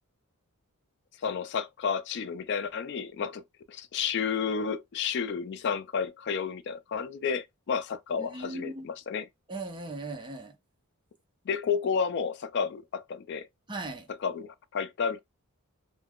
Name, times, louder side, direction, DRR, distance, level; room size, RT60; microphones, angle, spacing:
voice 1, 1.2-3.4 3.7-9.2 11.5-13.5 14.2-15.2, left 6 dB, 50° left, 0.3 m, -31 dB
voice 2, 8.2-8.9 9.5-10.6 13.7-14.1, right 2 dB, 20° right, 0.6 m, -38 dB
2.3 x 2.2 x 3.4 m
head